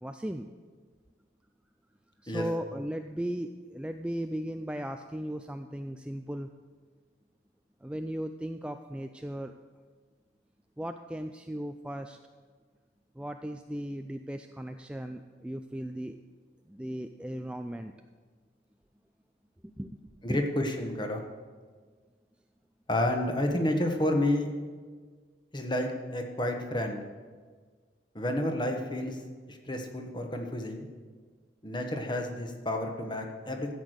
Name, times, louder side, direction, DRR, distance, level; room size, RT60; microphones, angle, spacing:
voice 1, 0.0-0.5 2.2-6.5 7.8-9.5 10.8-12.2 13.2-16.2 16.7-17.9 19.6-20.0 20.3-20.4, right 1 dB, 5° right, 6 dB, 0.3 m, -36 dB
voice 2, 20.2-21.2 22.9-24.5 25.5-27.0 28.1-29.2 29.5-30.9 31.6-33.7, left 1 dB, 25° left, 4 dB, 1.3 m, -30 dB
13.0 x 8.2 x 6.5 m, 1.5 s
head